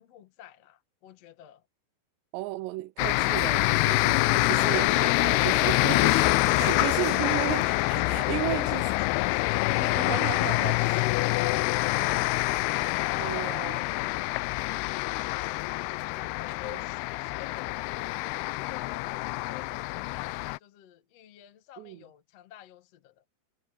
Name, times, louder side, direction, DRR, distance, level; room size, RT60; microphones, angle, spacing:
voice 1, 0.0-1.7 8.0-10.1 10.4-15.7 16.0-18.2 18.7-23.2, left 11 dB, 50° left, 2.1 m, -48 dB
voice 2, 2.3-8.8 9.8-11.0 13.2-13.8 16.6-16.8 21.8-22.0, right 18 dB, 85° right, 2.9 m, -34 dB
sound 1, 3.0-20.6, left 21 dB, 85° left, 2.3 m, -26 dB
omnidirectional pair, 4.9 m